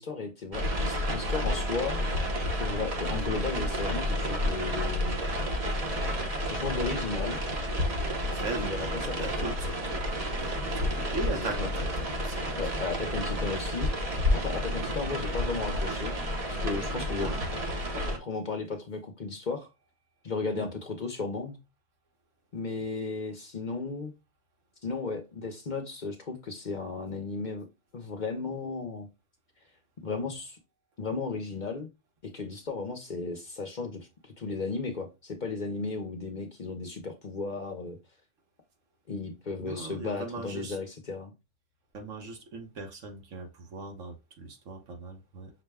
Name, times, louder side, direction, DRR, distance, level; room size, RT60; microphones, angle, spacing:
voice 1, 0.0-2.0 2.6-5.2 6.5-7.4 8.6-9.5 11.3-11.7 12.6-13.9 14.3-16.2 16.5-19.7 20.2-21.6 22.5-24.1 24.8-27.7 27.9-29.1 30.0-30.6 31.0-31.9 32.2-38.0 39.1-41.3, left 4 dB, 45° left, 0.8 m, -35 dB
sound 1, 0.5-18.2, equal, 35° right, 0.8 m, -30 dB
voice 2, 8.3-10.0 10.4-11.9 12.2-12.6 17.2-17.4 20.5-20.7 39.6-40.7 41.9-45.5, right 3 dB, 75° right, 1.4 m, -39 dB
5.9 x 2.2 x 3.4 m
omnidirectional pair, 1.3 m